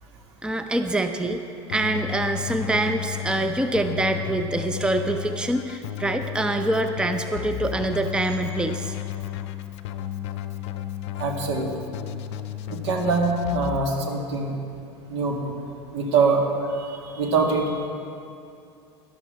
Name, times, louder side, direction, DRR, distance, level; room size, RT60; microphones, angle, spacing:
voice 1, 0.4-1.4 1.7-8.9, right 2 dB, 5° right, 7 dB, 0.6 m, -25 dB
Keyboard (musical), 1.7-13.8, left 11 dB, 65° left, 0.6 m, -33 dB
voice 2, 11.2-11.7 12.7-14.5 15.1-15.6 15.9-16.5 16.8-17.9, right 4 dB, 70° right, 2 dB, 1.9 m, -24 dB
12.5 x 11.5 x 4.8 m, 2.5 s
hypercardioid pair, 80°, 15 cm